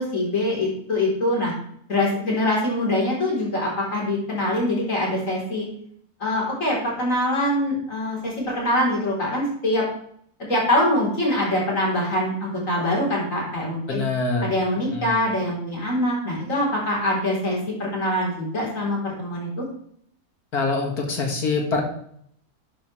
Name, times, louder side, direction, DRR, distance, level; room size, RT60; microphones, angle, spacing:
voice 1, 0.0-1.5 1.9-5.7 6.2-9.8 10.4-14.0 14.4-19.7, left 1 dB, 60° left, -3 dB, 4.3 m, -24 dB
voice 2, 13.9-14.5 14.9-15.2 20.5-21.8, left 3 dB, 90° left, 1 dB, 2.5 m, -24 dB
12.0 x 8.5 x 3.3 m, 0.66 s
omnidirectional pair, 1.6 m